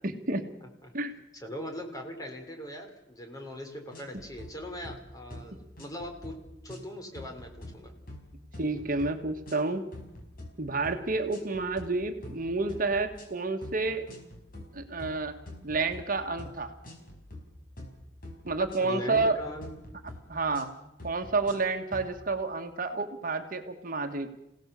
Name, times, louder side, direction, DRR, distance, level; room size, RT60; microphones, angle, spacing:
voice 1, 0.0-0.5 0.9-1.1 8.6-9.9 10.6-14.0 14.7-15.3 15.6-16.7 18.4-19.4 20.3-20.7 21.0-24.3, right 3 dB, 50° right, 5 dB, 1.6 m, -30 dB
voice 2, 0.6-0.9 1.3-6.4 6.6-7.9 18.8-19.7, equal, 20° left, 3 dB, 3.6 m, -40 dB
sound 1, 3.9-4.5 4.8-5.0 5.3-5.5 5.8-6.4 6.7-6.9 7.1-7.8 8.1-8.3 8.5-9.1 9.5-9.6 9.9-10.5 10.8-11.0 11.3-11.9 12.2-12.4 12.7-13.3 13.6-13.8 14.1-14.7 15.0-16.1 16.4-16.5 16.8-17.4 17.8-17.9 18.2-19.4 19.6-20.2 20.5-20.7 21.0-21.6 21.9-22.1, left 1 dB, 55° left, 4.9 m, -45 dB
27.5 x 17.0 x 6.9 m, 0.88 s
head